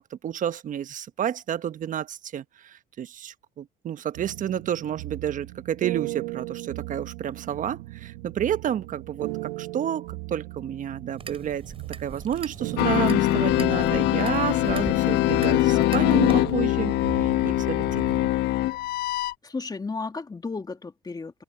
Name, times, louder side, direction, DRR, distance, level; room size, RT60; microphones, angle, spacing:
voice 1, 0.0-11.7 12.0-16.9 17.2-17.9, right 9 dB, 50° right, 1.3 m, -30 dB
sound 1, 4.2-18.3, right 20 dB, 90° right, 2.4 m, -37 dB
sound 2, 11.2-16.4, right 5 dB, 35° right, 4.4 m, -41 dB
sound 3, 12.8-19.3, left 17 dB, 75° left, 1.5 m, -22 dB
voice 2, 19.4-21.4, left 4 dB, 25° left, 2.6 m, -34 dB
open air
supercardioid pair, 80°, 17 cm